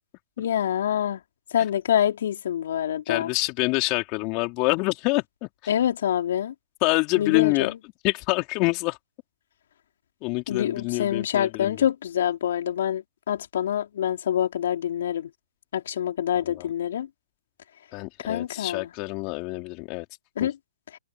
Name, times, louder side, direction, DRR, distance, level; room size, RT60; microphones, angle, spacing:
voice 1, 0.4-1.2 1.5-3.3 5.7-6.5 7.2-7.7 10.5-15.3 15.7-17.1 18.2-18.9 20.4-20.5, left 10 dB, 60° left, 4.7 m, -26 dB
voice 2, 3.1-5.7 6.8-7.7 8.0-9.0 10.2-11.8 16.4-16.7 17.9-20.1 20.4-20.5, left 27 dB, 35° left, 4.4 m, -26 dB
hypercardioid pair, 125°, 0 cm